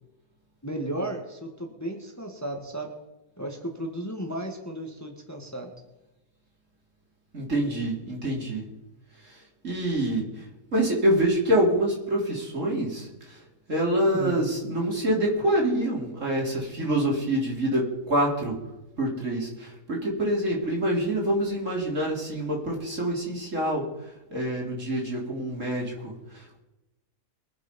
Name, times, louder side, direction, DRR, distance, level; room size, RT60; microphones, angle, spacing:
voice 1, 0.6-2.9 3.4-5.7 14.1-14.4, right 1 dB, 10° left, 2 dB, 1.7 m, -34 dB
voice 2, 7.3-8.7 9.2-9.4 9.6-10.5 10.7-13.4 13.7-18.6 19.0-23.9 24.3-26.6, right 1 dB, 55° right, -2 dB, 4.0 m, -26 dB
23.0 x 7.9 x 5.4 m, 1.0 s
omnidirectional pair, 1.5 m